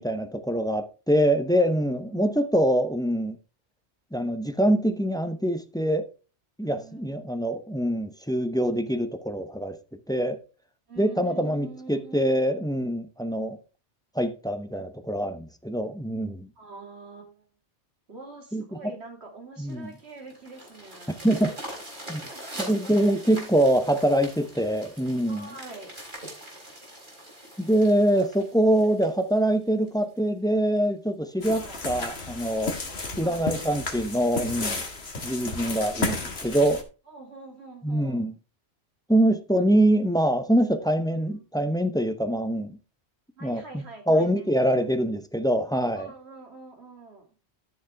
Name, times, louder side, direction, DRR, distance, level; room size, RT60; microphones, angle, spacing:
voice 1, 0.0-3.4 4.1-6.0 6.6-9.8 10.1-10.4 11.0-13.6 14.2-16.5 18.5-18.6 19.6-19.9 21.1-21.5 22.1-22.2 22.6-25.5 27.6-32.8 33.2-34.8 35.2-36.8 37.8-38.3 39.1-42.8 43.4-46.1, right 1 dB, 5° left, 0.7 m, -24 dB
voice 2, 1.9-2.4 6.6-7.2 10.9-12.5 16.6-17.5 18.1-21.2 22.0-22.9 25.3-25.9 31.5-31.9 33.1-33.5 37.1-38.3 40.9-41.4 43.4-44.8 46.0-47.3, right 3 dB, 70° right, 3.1 m, -45 dB
sound 1, 19.7-30.2 30.8-30.9 31.3-31.4 31.7-31.8 32.2-32.4 33.3-33.4, right 1 dB, 45° right, 4.3 m, -42 dB
sound 2, 31.4-36.8, left 3 dB, 65° left, 2.0 m, -33 dB
13.5 x 6.6 x 3.5 m
omnidirectional pair, 1.2 m